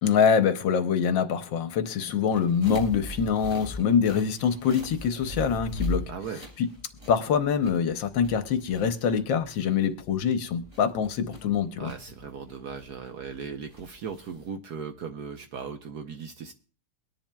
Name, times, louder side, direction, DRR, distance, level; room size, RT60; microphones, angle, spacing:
voice 1, 0.0-6.1 6.6-6.7 7.1-11.9, left 7 dB, 70° left, 1.4 m, -24 dB
sound 1, 2.3-14.5, left 1 dB, 25° right, 3.9 m, -40 dB
voice 2, 6.1-6.4 11.8-16.5, right 6 dB, 60° right, 1.1 m, -38 dB
22.5 x 10.5 x 2.3 m
omnidirectional pair, 2.3 m